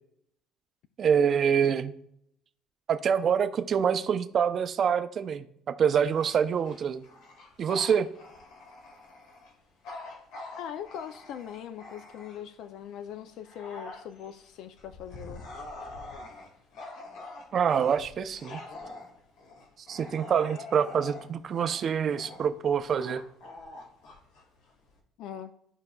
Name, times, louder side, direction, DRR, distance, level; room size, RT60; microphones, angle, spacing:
voice 1, 1.0-1.9 2.9-5.5 5.8-7.0 7.6-8.1 17.5-18.6 19.9-23.2, right 7 dB, 35° right, 0.5 m, -26 dB
Bark / Growling, 6.1-12.6 13.1-25.0, left 2 dB, 80° left, 1.9 m, -45 dB
voice 2, 10.6-15.4 25.2-25.5, left 9 dB, 60° left, 0.4 m, -41 dB
13.0 x 4.8 x 2.3 m
cardioid pair, 150°, 0 cm